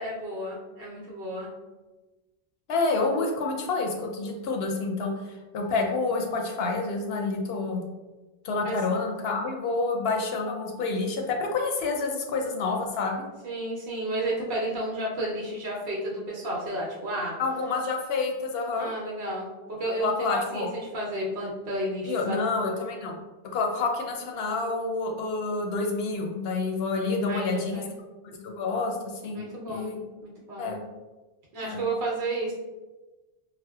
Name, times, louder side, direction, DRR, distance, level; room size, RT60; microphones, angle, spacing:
voice 1, 0.0-1.5 8.6-8.8 13.4-17.3 18.8-22.5 27.3-28.0 29.3-30.7 31.5-32.5, right 1 dB, 70° right, -5 dB, 0.9 m, -32 dB
voice 2, 2.7-7.8 8.4-13.2 17.4-18.9 20.0-20.7 22.0-23.2 23.5-27.8 28.4-29.0 29.2-30.0 30.6-30.8 31.6-31.8, left 3 dB, 75° left, 2 dB, 0.8 m, -28 dB
4.3 x 2.0 x 2.3 m, 1.2 s
omnidirectional pair, 1.1 m